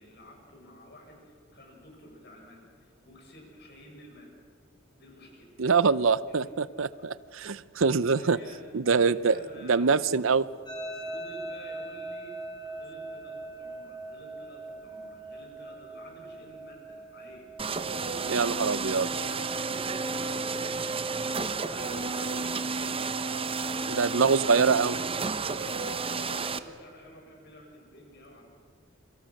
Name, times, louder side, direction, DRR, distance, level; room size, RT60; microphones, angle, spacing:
voice 1, 0.0-4.3 5.0-5.7 6.3-6.4 8.2-8.6 9.0-10.1 10.9-19.7 19.9-24.1 24.5-24.8 25.4-28.4, left 1 dB, 55° left, 1 dB, 7.3 m, -50 dB
voice 2, 5.6-8.4 8.7-10.4 18.3-19.1 23.9-25.0, right 5 dB, 70° right, 17 dB, 0.7 m, -24 dB
sound 1, 10.7-19.7, right 2 dB, 20° left, 5.4 m, -42 dB
sound 2, 17.6-26.6, right 4 dB, 30° right, 1.0 m, -31 dB
27.5 x 25.0 x 6.5 m, 2.2 s
head